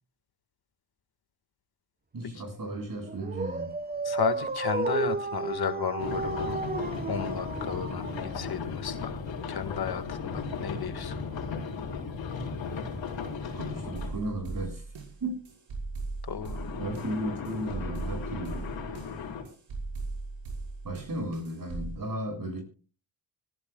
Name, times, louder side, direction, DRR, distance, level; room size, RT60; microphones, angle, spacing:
voice 1, 2.1-3.8 13.5-14.9 15.2-15.5 16.8-18.7 20.8-22.6, right 1 dB, 45° right, 6.9 m, -35 dB
Dog, 3.0-8.7, right 3 dB, 20° right, 1.2 m, -33 dB
voice 2, 4.0-6.6 7.1-9.2 9.5-11.2 16.3-16.6, left 7 dB, 55° left, 1.7 m, -33 dB
sound 1, 6.0-14.2 16.4-19.4, left 5 dB, 75° left, 4.1 m, -36 dB
sound 2, 14.0-22.0, right 3 dB, 75° right, 5.0 m, -39 dB
25.0 x 14.5 x 2.3 m
cardioid pair, 65°, 46 cm